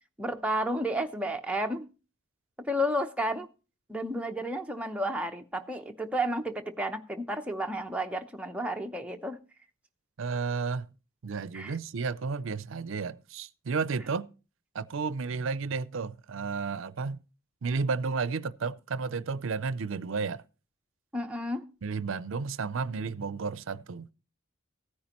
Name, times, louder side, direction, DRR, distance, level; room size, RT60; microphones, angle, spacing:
voice 1, 0.2-1.9 2.6-3.5 3.9-9.4 11.5-11.8 21.1-21.7, equal, 5° right, 0.7 m, -32 dB
voice 2, 10.2-10.9 11.2-14.3 14.7-17.2 17.6-20.4 21.8-24.1, right 4 dB, 70° right, 0.5 m, -32 dB
15.5 x 9.5 x 2.9 m
head